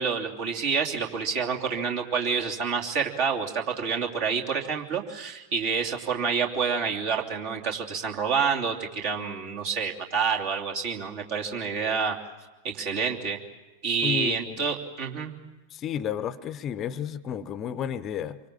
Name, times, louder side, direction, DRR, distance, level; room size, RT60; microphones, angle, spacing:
voice 1, 0.0-12.2 12.6-13.4 13.8-15.3, right 6 dB, 50° right, 1 dB, 2.9 m, -28 dB
voice 2, 14.0-14.6 15.7-18.4, left 9 dB, 30° left, 15 dB, 0.8 m, -32 dB
26.0 x 24.5 x 7.5 m, 1.1 s
figure-of-eight pair, 90°, 0 cm